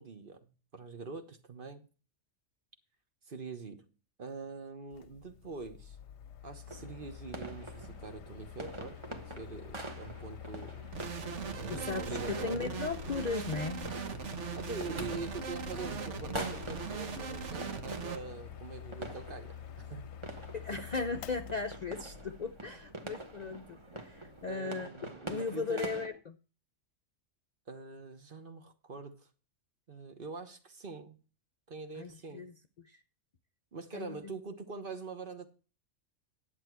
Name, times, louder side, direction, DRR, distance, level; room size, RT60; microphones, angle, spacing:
voice 1, 0.0-1.9 3.3-3.8 4.2-6.0 6.4-10.9 11.5-12.7 14.5-20.0 20.7-20.8 24.5-25.9 27.7-29.3 29.9-31.2 31.7-32.4 33.7-35.5, right 4 dB, 45° right, 8 dB, 1.2 m, -44 dB
Mechanical fan, 4.9-24.6, left 10 dB, 65° left, 0.9 m, -48 dB
sound 1, 6.7-26.1, right 2 dB, 25° right, 1.2 m, -46 dB
sound 2, 10.9-18.2, right 6 dB, 70° right, 1.4 m, -40 dB
voice 2, 11.7-14.2 20.5-24.9 25.3-26.4 31.9-33.0 33.9-34.3, left 4 dB, 50° left, 6 dB, 0.5 m, -37 dB
10.5 x 8.1 x 4.5 m, 0.36 s
omnidirectional pair, 1.3 m